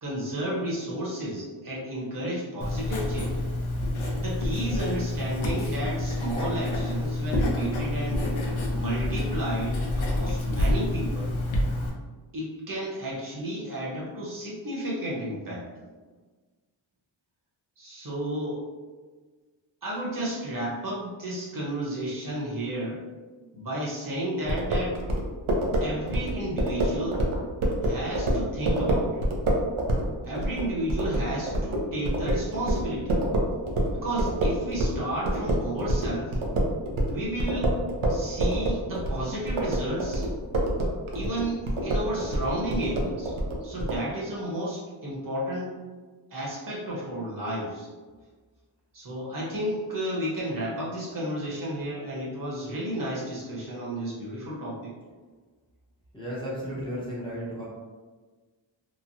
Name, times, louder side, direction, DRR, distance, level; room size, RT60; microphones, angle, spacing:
voice 1, 0.0-3.4 4.2-8.3 8.7-11.3 12.3-15.7 17.8-18.6 19.8-23.0 23.5-25.0 25.8-27.2 27.8-29.3 30.2-33.2 33.9-36.4 37.1-37.8 38.1-40.3 41.1-43.3 43.6-45.7 46.3-47.9 48.9-54.9, right 1 dB, 45° right, -5 dB, 0.9 m, -32 dB
Writing, 2.6-11.9, left 1 dB, 75° left, 0.7 m, -28 dB
sound 1, 24.5-35.0 35.2-44.0, right 1 dB, 85° right, 0.6 m, -26 dB
voice 2, 56.1-57.6, equal, 10° left, -8 dB, 0.6 m, -34 dB
3.0 x 2.1 x 2.6 m, 1.4 s
wide cardioid pair, 105°, 47 cm